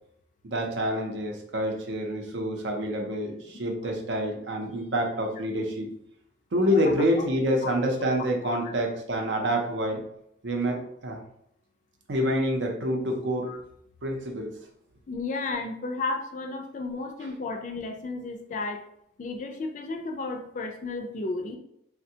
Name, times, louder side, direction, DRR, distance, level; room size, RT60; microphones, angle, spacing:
voice 1, 0.4-5.9 6.5-10.0 10.4-11.2 12.1-13.5 14.0-14.5, equal, 75° right, 2 dB, 0.6 m, -27 dB
voice 2, 15.1-18.8 19.2-21.6, left 3 dB, 40° left, 4 dB, 0.3 m, -33 dB
3.3 x 2.1 x 2.7 m, 0.74 s
head